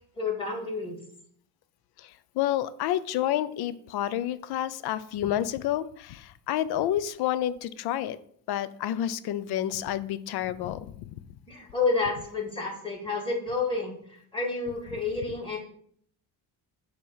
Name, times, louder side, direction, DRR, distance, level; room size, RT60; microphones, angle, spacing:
voice 1, 0.2-1.0 11.5-15.6, left 3 dB, 15° left, -2 dB, 2.0 m, -30 dB
voice 2, 2.0-8.2 8.5-10.9, left 12 dB, 80° left, 15 dB, 0.5 m, -29 dB
7.6 x 3.0 x 5.5 m, 0.63 s
cardioid pair, 140°, 38 cm